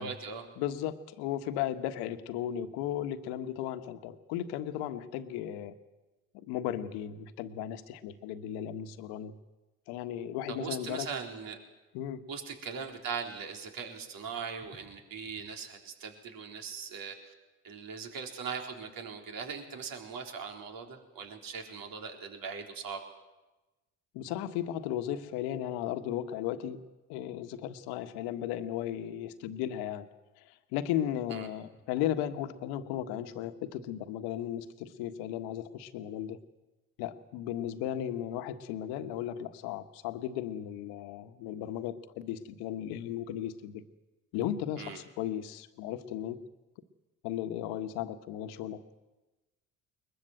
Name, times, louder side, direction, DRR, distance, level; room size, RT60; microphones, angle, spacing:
voice 1, 0.0-0.5 10.5-11.6 12.3-17.3 17.6-23.0 31.3-31.5 44.8-45.0, right 6 dB, 55° right, 3 dB, 4.0 m, -40 dB
voice 2, 0.6-5.8 6.3-9.3 9.9-11.1 11.9-12.2 24.1-26.8 27.1-30.1 30.5-36.4 37.0-43.8 44.3-46.4 47.2-48.9, left 11 dB, 70° left, 10 dB, 1.5 m, -35 dB
21.5 x 21.5 x 7.8 m, 1.1 s
hypercardioid pair, 60°, 40 cm